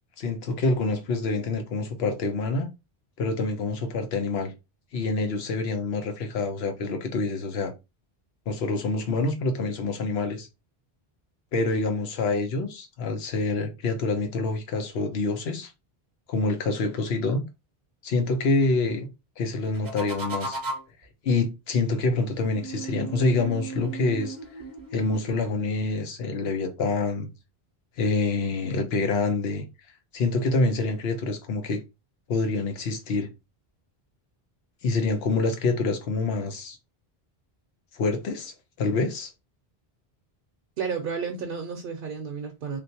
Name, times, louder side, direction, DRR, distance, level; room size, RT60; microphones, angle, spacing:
voice 1, 0.2-2.7 3.2-4.5 4.9-7.7 8.5-10.5 11.5-15.7 16.3-17.4 18.0-19.1 19.4-20.6 21.2-24.4 24.9-27.3 28.0-29.7 30.1-31.8 32.3-33.3 34.8-36.8 37.9-39.3, left 3 dB, 80° left, 1.0 m, -26 dB
sound 1, 19.6-21.0 22.5-25.3, right 3 dB, 25° right, 0.6 m, -36 dB
voice 2, 40.8-42.8, right 6 dB, 65° right, 0.7 m, -32 dB
3.2 x 2.5 x 2.7 m
omnidirectional pair, 1.0 m